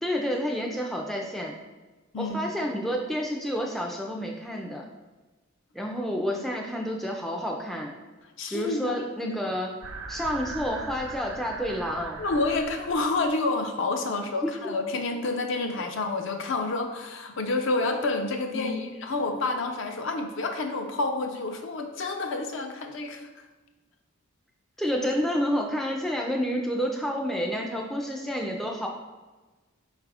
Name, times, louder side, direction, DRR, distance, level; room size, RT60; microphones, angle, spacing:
voice 1, 0.0-1.5 2.2-4.8 5.7-7.9 8.5-9.7 10.1-12.2 14.4-14.5 18.5-18.9 24.8-28.9, equal, ahead, 0 dB, 0.3 m, -29 dB
voice 2, 2.1-2.6 8.4-9.4 12.2-23.3, left 3 dB, 60° left, 4 dB, 0.5 m, -29 dB
sound 1, 9.8-13.3, right 4 dB, 80° right, 0.5 m, -40 dB
4.6 x 2.4 x 4.7 m, 1.2 s
head